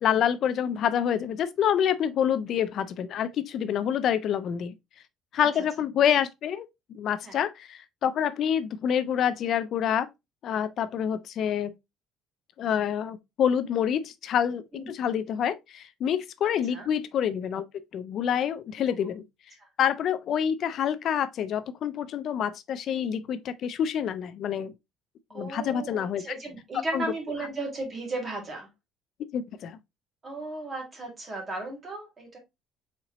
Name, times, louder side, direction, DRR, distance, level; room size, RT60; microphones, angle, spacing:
voice 1, 0.0-4.7 5.3-10.1 10.4-11.7 12.6-17.6 17.9-19.2 19.8-24.7 25.3-26.2 26.9-27.0 29.3-29.8, left 9 dB, 50° left, 0.4 m, -27 dB
voice 2, 16.4-16.9 18.8-18.9 19.6-19.7 25.3-28.7 30.2-32.4, right 2 dB, 25° right, 2.0 m, -35 dB
4.3 x 3.8 x 3.0 m
cardioid pair, 150°, 0 cm